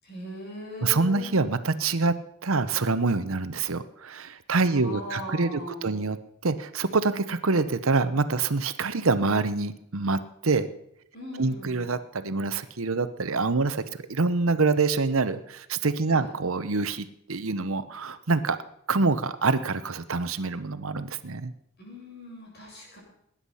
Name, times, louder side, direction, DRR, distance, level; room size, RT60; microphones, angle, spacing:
voice 1, 0.0-1.4 4.7-6.0 11.1-11.9 16.1-16.3 21.8-23.0, equal, 45° left, -3 dB, 7.5 m, -40 dB
voice 2, 0.8-2.1 2.4-6.2 6.4-10.7 11.4-18.6 18.9-21.5, right 3 dB, 70° right, 12 dB, 0.9 m, -26 dB
19.5 x 10.0 x 5.6 m, 0.75 s
head